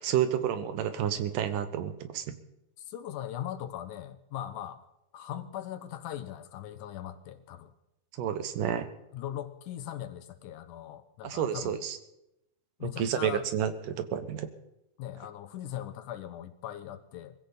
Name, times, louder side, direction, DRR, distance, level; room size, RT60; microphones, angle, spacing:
voice 1, 0.0-2.4 8.2-8.9 11.2-12.0 12.8-14.5, right 9 dB, 90° right, 10 dB, 2.8 m, -30 dB
voice 2, 2.8-4.8 5.1-7.7 9.1-11.8 12.8-13.5 15.0-17.3, left 11 dB, 80° left, 10 dB, 2.6 m, -39 dB
22.0 x 15.5 x 4.1 m, 0.87 s
omnidirectional pair, 3.6 m